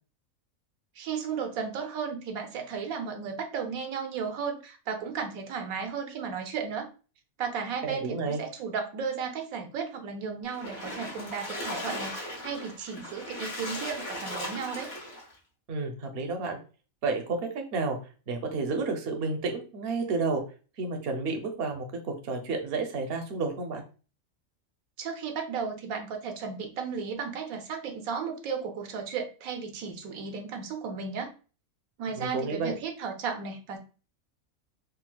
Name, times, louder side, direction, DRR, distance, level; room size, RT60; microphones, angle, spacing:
voice 1, 1.0-6.9 7.4-14.9 25.0-31.3 32.0-33.8, right 6 dB, 85° right, 4 dB, 1.1 m, -34 dB
voice 2, 7.8-8.4 15.7-16.6 17.0-18.0 18.3-20.4 20.8-23.8 32.2-32.7, right 3 dB, 55° right, 4 dB, 0.8 m, -31 dB
Splash splatter, 10.5-15.3, left 1 dB, 50° left, 1.3 m, -37 dB
4.0 x 2.4 x 2.2 m, 0.35 s
omnidirectional pair, 1.4 m